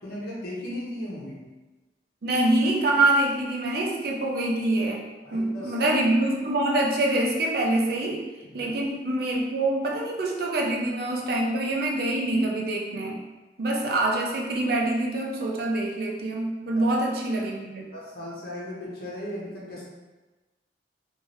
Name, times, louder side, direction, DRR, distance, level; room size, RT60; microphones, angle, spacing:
voice 1, 0.0-1.4 5.2-5.9 8.4-8.7 16.7-16.9 17.9-19.8, left 1 dB, 55° left, -5 dB, 1.1 m, -37 dB
voice 2, 2.2-8.2 8.5-13.2 13.6-17.9, right 2 dB, 55° right, 0 dB, 0.6 m, -25 dB
3.3 x 3.2 x 3.1 m, 1.2 s
head